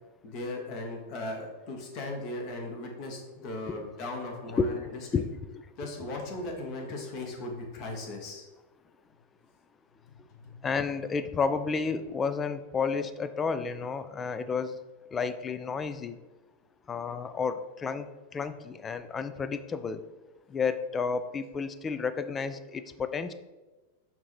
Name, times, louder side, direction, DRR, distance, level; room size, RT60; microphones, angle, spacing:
voice 1, 0.2-4.8 5.8-8.4 10.3-10.5, left 2 dB, 40° left, 2 dB, 1.2 m, -37 dB
voice 2, 10.6-14.8 15.1-16.2 16.9-20.0 20.5-23.3, left 5 dB, 20° left, 12 dB, 0.4 m, -31 dB
8.2 x 2.8 x 4.3 m, 1.2 s
figure-of-eight pair, 90°, 0 cm